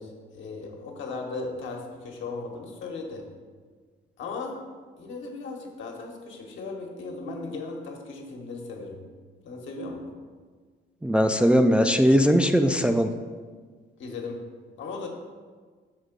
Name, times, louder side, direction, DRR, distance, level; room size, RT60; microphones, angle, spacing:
voice 1, 0.0-3.3 4.2-4.6 5.0-9.0 9.4-10.1 14.0-14.4 14.8-15.1, left 3 dB, 70° left, 1 dB, 1.2 m, -37 dB
voice 2, 11.0-13.1, equal, 5° right, 5 dB, 0.3 m, -20 dB
6.7 x 3.5 x 5.2 m, 1.5 s
cardioid pair, 90°, 20 cm